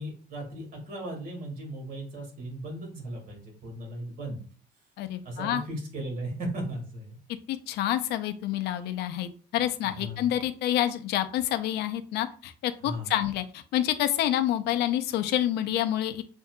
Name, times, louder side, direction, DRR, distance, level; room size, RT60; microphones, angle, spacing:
voice 1, 0.0-4.4 5.2-7.2 10.0-10.4 12.8-13.1, right 1 dB, 60° right, 1 dB, 1.9 m, -37 dB
voice 2, 5.0-5.6 7.5-16.2, left 12 dB, 80° left, 9 dB, 0.6 m, -28 dB
7.2 x 2.7 x 2.2 m, 0.40 s
cardioid pair, 110°, 17 cm